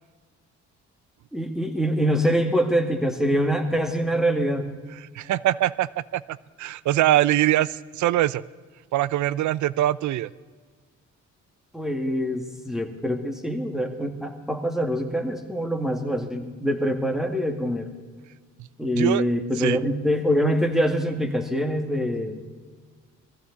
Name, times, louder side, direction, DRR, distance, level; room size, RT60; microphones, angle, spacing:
voice 1, 1.3-4.7 11.7-17.9 18.8-22.4, equal, ahead, 5 dB, 2.0 m, -24 dB
voice 2, 5.1-8.4 8.9-10.3 19.0-19.2 19.6-19.8, right 14 dB, 70° right, 20 dB, 0.5 m, -23 dB
20.5 x 15.0 x 4.1 m, 1.5 s
cardioid pair, 90°, 30 cm